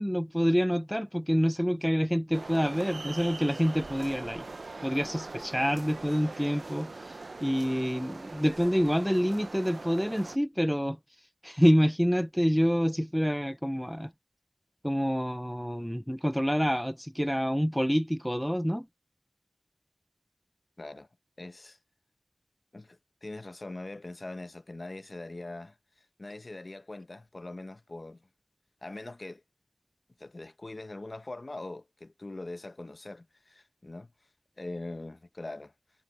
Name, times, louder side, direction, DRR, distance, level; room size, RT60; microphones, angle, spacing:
voice 1, 0.0-4.5 4.8-11.0 11.4-14.1 14.8-18.9, equal, ahead, 0.4 m, -27 dB
sound 1, 2.3-10.4, right 3 dB, 55° right, 0.6 m, -42 dB
voice 2, 20.8-21.1 21.4-21.8 22.7-25.8 26.2-28.2 28.8-29.4 30.2-34.1 34.6-35.7, left 2 dB, 35° left, 0.8 m, -42 dB
wide cardioid pair, 80°, 0 cm